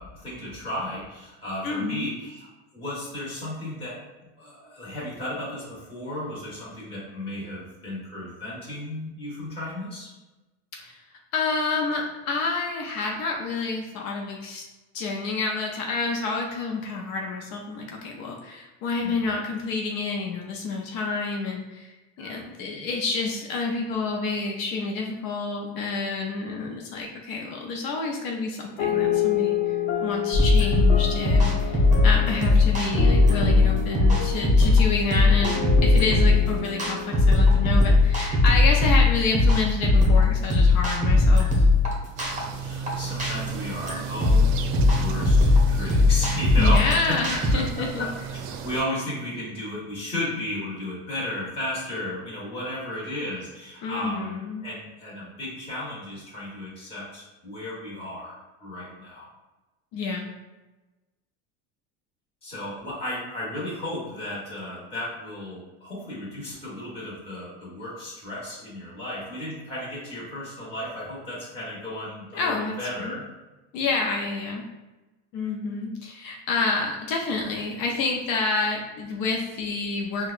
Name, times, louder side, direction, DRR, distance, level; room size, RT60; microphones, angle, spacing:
voice 1, 0.0-10.1 19.0-19.2 22.2-22.4 42.5-59.3 62.4-73.2, left 1 dB, 15° left, -7 dB, 1.5 m, -34 dB
voice 2, 1.6-2.1 10.8-11.0 11.3-14.6 14.9-29.7 30.0-35.5 35.8-41.6 46.6-48.1 53.8-54.6 59.9-60.3 72.3-73.1 73.7-74.6 75.3-80.3, left 3 dB, 60° left, 1 dB, 0.7 m, -29 dB
sound 1, 28.8-38.5, left 8 dB, 90° left, 1.0 m, -30 dB
sound 2, 30.3-47.5, left 3 dB, 20° right, 0.9 m, -19 dB
sound 3, 42.2-48.8, right 5 dB, 75° right, 0.5 m, -33 dB
4.6 x 2.3 x 2.5 m, 1.1 s
supercardioid pair, 130°, 39 cm